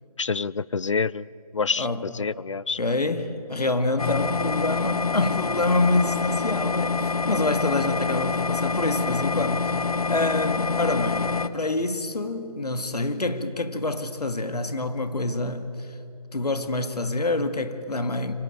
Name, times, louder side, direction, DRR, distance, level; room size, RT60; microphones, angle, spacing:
voice 1, 0.2-2.8, left 5 dB, 50° left, 0.5 m, -27 dB
voice 2, 2.8-16.0 16.3-18.3, left 2 dB, 90° left, 2.0 m, -27 dB
sound 1, 4.0-11.5, left 4 dB, 65° left, 1.0 m, -26 dB
25.0 x 18.0 x 9.0 m
figure-of-eight pair, 170°, 20 cm